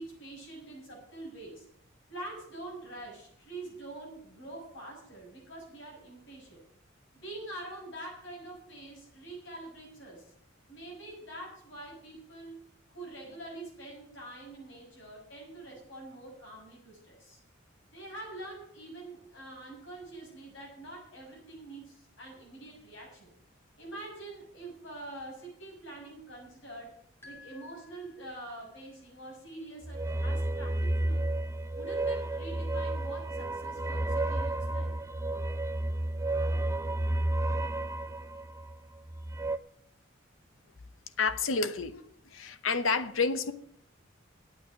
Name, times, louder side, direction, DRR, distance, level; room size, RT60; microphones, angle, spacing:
voice 1, 0.0-1.6 2.1-6.6 7.1-10.3 10.7-12.6 12.9-17.4 17.9-23.3 23.8-27.0 27.2-31.3 31.7-34.9, right 2 dB, 65° left, -1 dB, 6.5 m, -45 dB
sound 1, 27.2-28.8, left 3 dB, 10° left, 2.8 m, -55 dB
sound 2, 29.8-39.6, right 1 dB, 15° right, 0.5 m, -31 dB
voice 2, 41.2-42.0 42.3-43.5, left 4 dB, 85° left, 11 dB, 1.0 m, -29 dB
9.2 x 8.1 x 9.0 m, 0.67 s
head